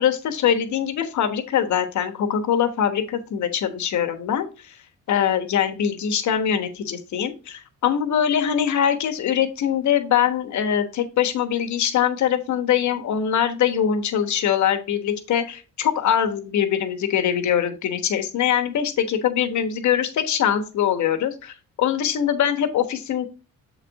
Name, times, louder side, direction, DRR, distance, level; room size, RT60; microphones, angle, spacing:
voice 1, 0.0-4.7 5.1-23.3, left 9 dB, 70° left, 7 dB, 1.3 m, -23 dB
7.3 x 4.1 x 4.7 m, 0.33 s
cardioid pair, 90°, 30 cm